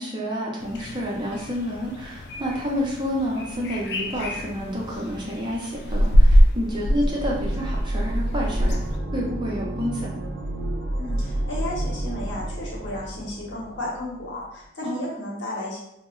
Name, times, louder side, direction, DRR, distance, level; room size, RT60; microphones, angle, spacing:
voice 1, 0.0-8.8 9.1-10.1 14.8-15.1, equal, 25° right, -4 dB, 0.5 m, -29 dB
sound 1, 0.6-9.0, equal, 60° left, 0.3 m, -24 dB
sound 2, 4.1-5.7 6.3-14.3, right 1 dB, 75° right, 0.5 m, -31 dB
voice 2, 11.0-15.8, left 1 dB, 75° left, -4 dB, 0.9 m, -33 dB
2.1 x 2.0 x 3.6 m, 0.81 s
head